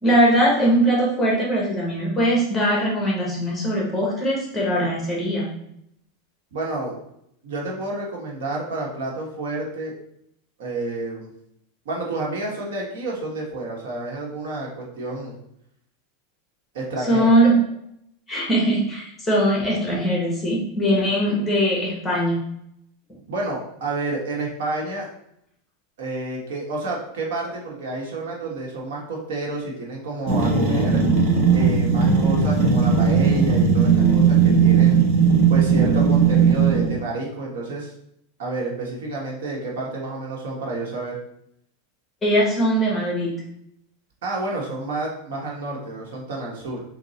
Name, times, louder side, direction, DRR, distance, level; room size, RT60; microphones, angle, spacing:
voice 1, 0.0-5.5 17.1-17.6 18.3-22.4 42.2-43.3, right 1 dB, 10° left, -3 dB, 1.3 m, -21 dB
voice 2, 6.5-6.9 7.4-9.9 10.6-11.3 11.8-15.3 16.7-17.3 23.3-25.1 26.0-31.0 31.5-35.0 35.5-37.9 38.4-41.2 44.2-46.8, right 2 dB, 75° right, -2 dB, 1.4 m, -29 dB
sound 1, 30.3-37.0, right 5 dB, 50° right, 1.3 m, -17 dB
3.8 x 2.8 x 4.1 m, 0.73 s
supercardioid pair, 150°, 0 cm